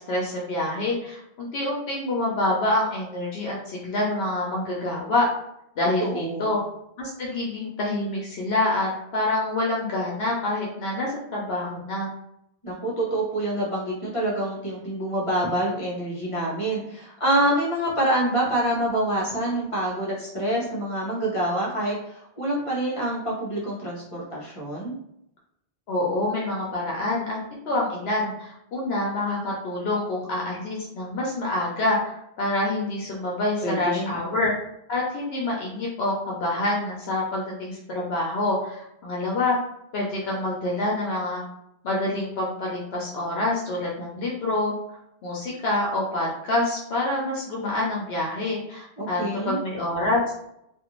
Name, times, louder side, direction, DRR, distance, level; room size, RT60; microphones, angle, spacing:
voice 1, 0.1-5.3 5.8-6.6 7.0-12.1 25.9-27.4 27.7-34.5 34.9-39.6 39.9-41.4 41.8-44.7 45.2-49.2 49.5-50.2, left 2 dB, 75° left, -3 dB, 0.9 m, -26 dB
voice 2, 6.0-6.5 12.6-25.0 33.6-34.1 49.0-49.6, right 1 dB, 35° left, -5 dB, 0.8 m, -26 dB
2.5 x 2.4 x 2.9 m, 0.78 s
omnidirectional pair, 1.1 m